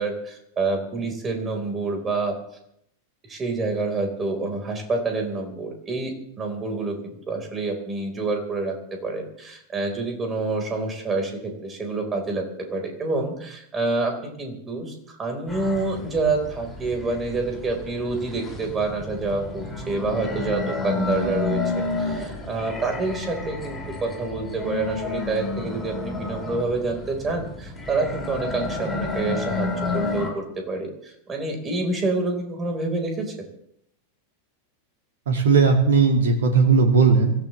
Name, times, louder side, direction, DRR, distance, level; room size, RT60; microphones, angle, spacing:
voice 1, 0.0-2.4 3.3-33.3, right 3 dB, 20° right, 2 dB, 4.3 m, -27 dB
sound 1, 15.5-30.3, left 3 dB, 5° left, 5.6 m, -31 dB
voice 2, 35.3-37.3, right 4 dB, 60° right, 4 dB, 2.2 m, -17 dB
25.0 x 14.5 x 3.3 m, 0.73 s
figure-of-eight pair, 90°, 0 cm